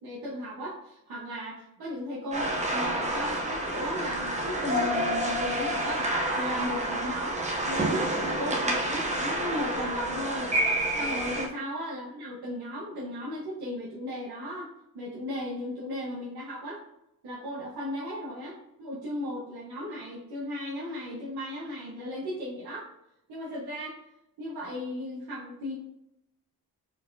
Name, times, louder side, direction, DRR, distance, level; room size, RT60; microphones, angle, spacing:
voice 1, 0.0-6.1 6.3-10.5 11.0-14.7 14.9-16.8 17.2-22.9 23.3-23.9 24.4-25.8, equal, 85° right, -6 dB, 1.3 m, -36 dB
sound 1, 2.3-11.5, right 1 dB, 20° right, 0.8 m, -29 dB
4.6 x 4.1 x 2.7 m, 0.83 s
wide cardioid pair, 170°, 37 cm